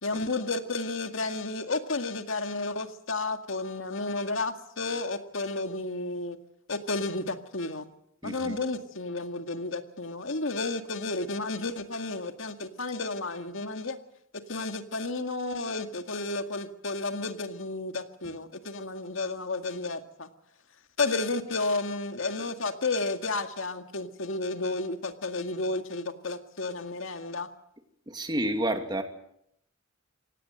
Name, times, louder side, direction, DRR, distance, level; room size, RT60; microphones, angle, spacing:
voice 1, 0.0-6.4 6.7-7.9 8.2-14.0 14.3-20.3 21.0-27.5, left 3 dB, 75° left, 7 dB, 2.0 m, -32 dB
voice 2, 8.2-8.6 28.1-29.0, right 1 dB, 20° right, 6 dB, 2.6 m, -29 dB
24.0 x 18.0 x 8.0 m, 0.74 s
head